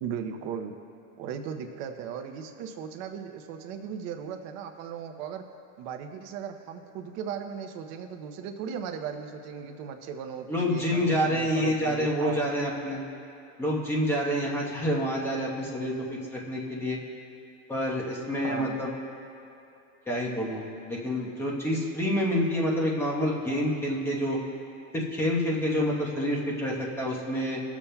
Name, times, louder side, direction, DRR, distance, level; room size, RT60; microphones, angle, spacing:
voice 1, 0.0-0.7 1.2-5.4 5.8-12.4 18.4-18.8, right 7 dB, 40° right, 7 dB, 0.7 m, -37 dB
voice 2, 10.5-13.0 13.6-15.9 16.3-17.0 17.7-18.9 20.1-24.4 24.9-27.6, equal, 5° left, -4 dB, 1.0 m, -28 dB
19.5 x 7.1 x 2.3 m, 2.8 s
supercardioid pair, 150°, 40 cm